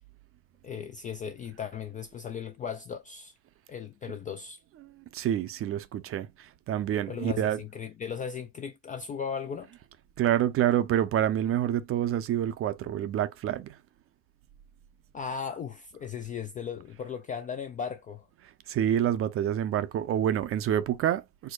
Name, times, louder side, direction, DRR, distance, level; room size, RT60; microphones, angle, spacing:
voice 1, 0.6-3.3 3.7-4.6 7.1-9.7 15.1-18.3, left 7 dB, 20° left, 0.3 m, -37 dB
voice 2, 4.7-7.6 10.2-13.8 18.7-21.5, right 11 dB, 30° right, 0.6 m, -27 dB
4.5 x 2.1 x 4.7 m
hypercardioid pair, 105°, 43 cm